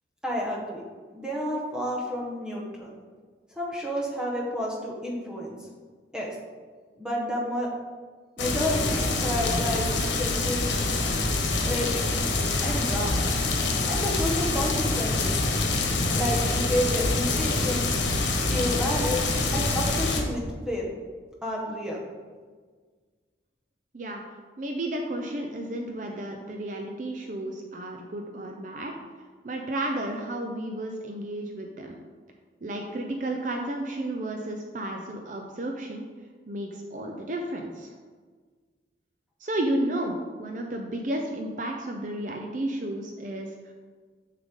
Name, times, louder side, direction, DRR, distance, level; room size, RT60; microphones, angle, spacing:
voice 1, 0.2-0.8 1.1-2.9 3.6-5.6 6.1-6.3 7.0-7.7 8.4-9.9 10.2-11.1 11.6-12.1 12.6-13.2 13.9-15.3 16.1-17.9 18.5-20.9 21.4-22.0, equal, 5° right, -3 dB, 1.3 m, -30 dB
sound 1, 8.4-20.2, left 3 dB, 90° left, 1.2 m, -26 dB
voice 2, 24.6-29.0 29.4-32.0 32.6-36.1 36.5-37.9 39.4-43.7, right 1 dB, 45° right, 2 dB, 0.6 m, -32 dB
7.1 x 6.6 x 3.7 m, 1.5 s
head